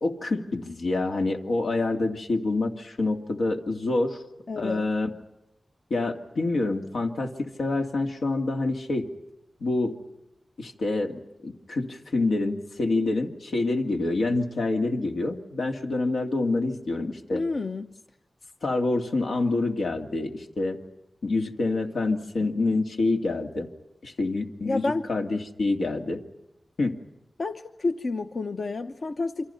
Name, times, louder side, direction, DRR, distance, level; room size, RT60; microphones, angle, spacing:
voice 1, 0.0-4.2 4.6-5.1 5.9-9.1 9.6-10.0 10.6-17.4 18.6-20.8 21.2-23.7 24.0-26.2 26.8-27.0, left 2 dB, 90° left, 2.5 m, -27 dB
voice 2, 4.5-4.8 17.3-17.9 24.6-25.1 27.4-29.5, left 3 dB, 55° left, 0.9 m, -29 dB
28.5 x 26.0 x 5.7 m
wide cardioid pair, 110°, 0 cm